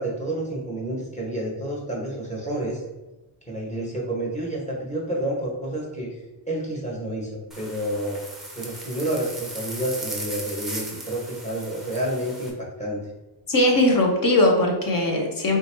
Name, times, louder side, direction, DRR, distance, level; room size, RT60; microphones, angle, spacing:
voice 1, 0.0-2.8 3.5-6.1 6.5-8.2 8.5-13.0, right 1 dB, 15° left, -4 dB, 1.1 m, -29 dB
sound 1, 7.5-12.5, right 1 dB, ahead, 0.6 m, -37 dB
voice 2, 13.5-15.6, left 1 dB, 45° left, 1 dB, 0.8 m, -20 dB
3.4 x 2.9 x 4.4 m, 1.0 s
wide cardioid pair, 160°, 48 cm